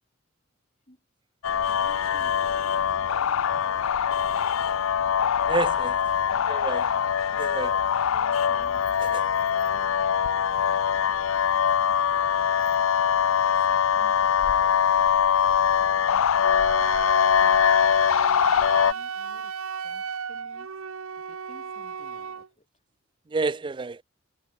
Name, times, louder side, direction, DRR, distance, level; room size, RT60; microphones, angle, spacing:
sound 1, 1.4-18.9, left 8 dB, 75° left, 0.5 m, -23 dB
voice 1, 1.4-4.0 6.3-6.6 7.4-7.7 8.1-8.9 9.3-11.4 13.7-16.8 17.4-17.8 18.3-19.5 19.8-20.7 21.2-22.7, left 1 dB, 30° left, 6.0 m, -55 dB
voice 2, 5.5-6.0 6.5-6.9 7.4-7.7 23.3-24.0, right 3 dB, 25° right, 0.4 m, -29 dB
Wind instrument woodwind instrument, 16.4-22.5, right 6 dB, 85° right, 0.8 m, -34 dB
head